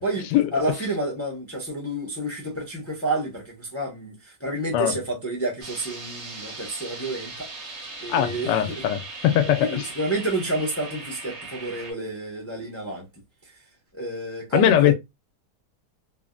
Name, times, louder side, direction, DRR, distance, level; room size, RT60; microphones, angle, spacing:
voice 1, 0.5-7.5 8.0-8.8 9.6-13.1 13.9-14.9, right 1 dB, 15° left, 0.4 m, -29 dB
sound 1, 5.6-11.9, right 3 dB, 45° right, 1.2 m, -39 dB
voice 2, 8.1-9.9 14.5-14.9, left 11 dB, 85° left, 1.2 m, -21 dB
3.3 x 2.1 x 2.3 m
omnidirectional pair, 1.8 m